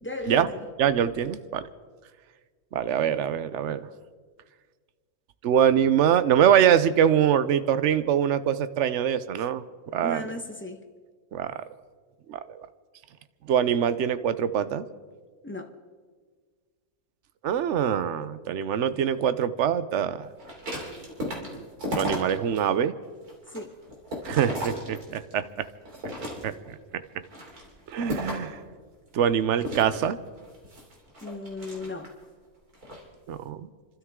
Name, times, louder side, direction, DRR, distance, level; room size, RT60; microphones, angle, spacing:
voice 1, 0.0-0.7 10.0-10.8 15.4-15.7 23.5-23.8 31.2-32.1, left 1 dB, 10° left, 0.9 m, -35 dB
voice 2, 0.8-1.6 2.7-3.9 5.4-9.6 9.9-10.2 11.3-11.6 12.3-12.6 13.5-14.8 17.4-20.3 21.9-22.9 24.3-25.7 26.4-26.7 27.9-28.6 29.1-30.2 33.3-33.7, right 9 dB, 60° right, 0.9 m, -24 dB
sound 1, 20.4-22.6 23.0-25.4 25.8-26.7 27.2-28.6 29.6-32.2 32.7-33.0, equal, 85° right, 3.5 m, -35 dB
30.0 x 12.5 x 3.7 m
omnidirectional pair, 1.6 m